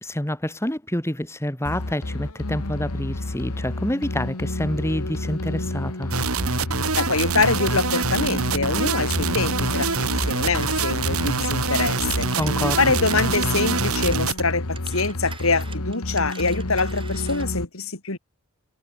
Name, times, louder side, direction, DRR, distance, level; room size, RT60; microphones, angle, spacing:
voice 1, 0.0-6.1 12.4-12.9, left 1 dB, 10° left, 2.3 m, -27 dB
sound 1, 1.6-17.6, left 1 dB, 90° left, 2.2 m, -30 dB
sound 2, 6.1-14.4, right 4 dB, 75° right, 3.6 m, -25 dB
voice 2, 6.9-12.3 12.8-18.2, left 3 dB, 65° left, 3.6 m, -24 dB
Telephone, 9.7-14.4 14.7-17.6, right 5 dB, 25° right, 5.6 m, -43 dB
head